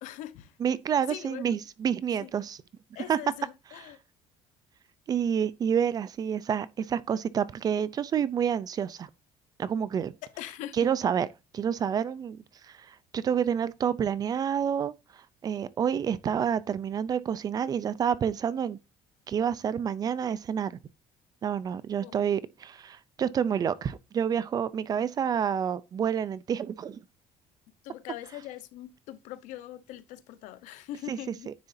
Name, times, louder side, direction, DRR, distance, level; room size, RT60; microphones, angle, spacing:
voice 1, 0.0-0.6 1.1-1.6 2.2-2.3 2.9-4.0 10.2-10.9 22.0-22.3 27.8-31.5, left 13 dB, 85° left, 1.0 m, -42 dB
voice 2, 0.6-2.6 3.1-3.2 5.1-9.1 9.6-10.1 10.8-11.3 11.5-18.8 19.3-20.8 21.4-27.0 31.1-31.2 31.5-31.6, right 8 dB, 30° right, 0.5 m, -28 dB
9.7 x 6.8 x 2.7 m
cardioid pair, 165°, 13 cm